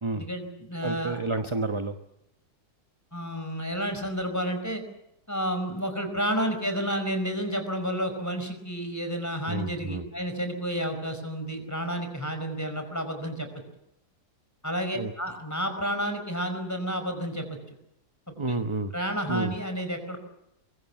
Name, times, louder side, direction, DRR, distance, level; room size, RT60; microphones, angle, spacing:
voice 1, 0.2-1.2 3.1-4.8 5.3-13.5 14.6-17.5 18.5-18.6 18.9-20.2, equal, 10° left, 6 dB, 4.8 m, -30 dB
voice 2, 0.8-2.0 9.5-10.0 14.9-15.1 18.4-18.9 19.3-19.5, right 2 dB, 20° right, 7 dB, 0.9 m, -30 dB
24.0 x 23.0 x 7.3 m, 0.86 s
omnidirectional pair, 1.8 m